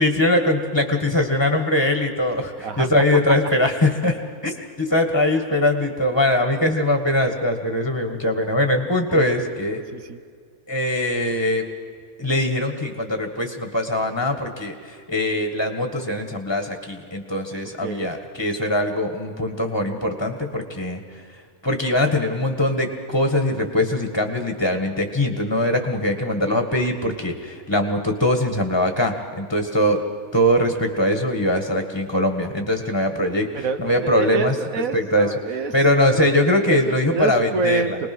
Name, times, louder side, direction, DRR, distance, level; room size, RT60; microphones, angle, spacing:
voice 1, 0.0-4.2 4.4-9.8 10.7-11.7 12.2-21.0 21.6-30.0 30.3-34.5 34.9-35.3 35.7-38.0, left 1 dB, 15° left, 4 dB, 1.6 m, -22 dB
voice 2, 17.8-18.1 33.5-35.7 36.0-36.3 36.7-36.8 37.1-37.9, right 4 dB, 65° right, 9 dB, 1.5 m, -27 dB
25.5 x 20.0 x 6.2 m, 2.1 s
omnidirectional pair, 1.6 m